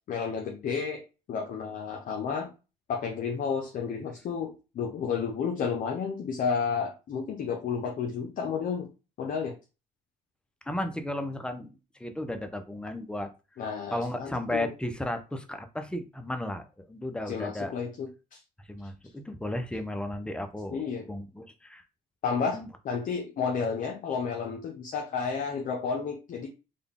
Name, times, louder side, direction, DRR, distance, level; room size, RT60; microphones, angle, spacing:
voice 1, 0.1-1.0 1.3-2.5 2.9-8.9 9.2-9.6 13.6-14.7 17.2-18.4 20.7-21.1 22.2-22.6 22.8-26.5, left 6 dB, 55° left, 2 dB, 0.7 m, -31 dB
voice 2, 10.7-11.7 12.0-13.3 13.9-17.7 18.7-20.8 21.1-21.8 22.5-22.7, left 1 dB, 5° left, 7 dB, 0.6 m, -34 dB
3.8 x 2.3 x 3.5 m, 0.31 s
cardioid pair, 110°, 17 cm